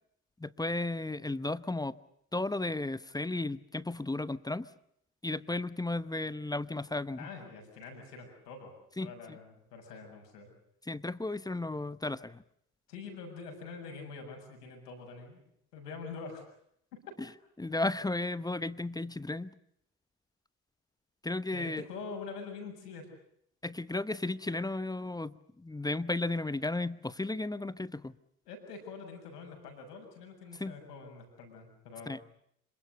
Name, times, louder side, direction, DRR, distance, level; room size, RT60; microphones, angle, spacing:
voice 1, 0.4-1.9 2.3-4.7 5.2-7.3 9.0-9.4 10.9-12.4 17.6-19.5 21.2-21.8 23.6-28.1 30.6-30.7 32.1-32.2, left 2 dB, 10° left, 17 dB, 0.9 m, -34 dB
voice 2, 7.2-10.5 12.9-15.4 15.7-16.4 21.5-23.1 28.5-32.2, left 4 dB, 75° left, 4 dB, 6.8 m, -45 dB
26.5 x 24.0 x 6.7 m, 0.73 s
figure-of-eight pair, 60°, 47 cm